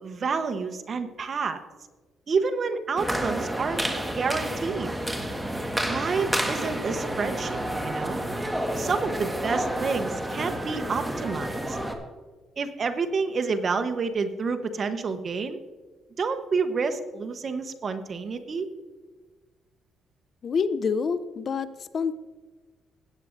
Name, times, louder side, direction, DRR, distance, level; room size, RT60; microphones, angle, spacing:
voice 1, 0.0-1.6 2.3-3.8 4.1-4.9 5.8-8.2 8.8-11.8 12.6-15.6 16.2-18.7, right 4 dB, 45° right, 8 dB, 1.0 m, -29 dB
sound 1, 3.0-11.9, right 1 dB, 5° right, 1.5 m, -30 dB
voice 2, 20.4-22.2, left 5 dB, 50° left, 14 dB, 0.5 m, -27 dB
16.5 x 9.2 x 2.6 m, 1.3 s
cardioid pair, 90°, 0 cm